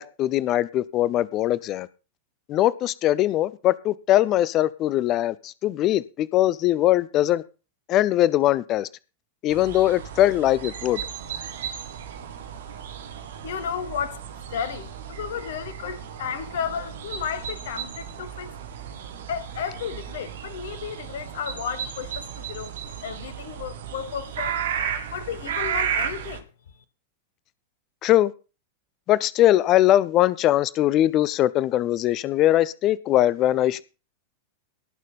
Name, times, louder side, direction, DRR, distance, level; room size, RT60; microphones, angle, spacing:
voice 1, 0.0-1.9 2.5-7.4 7.9-8.9 9.4-11.0 28.0-28.3 29.1-33.8, left 13 dB, 35° left, 0.7 m, -21 dB
sound 1, 9.5-26.4, right 8 dB, 60° right, 2.0 m, -34 dB
voice 2, 13.1-14.2 14.5-18.5 19.3-22.7 23.0-24.6 25.1-26.5, left 8 dB, 60° left, 1.6 m, -33 dB
18.0 x 6.6 x 5.4 m
figure-of-eight pair, 90°, 0 cm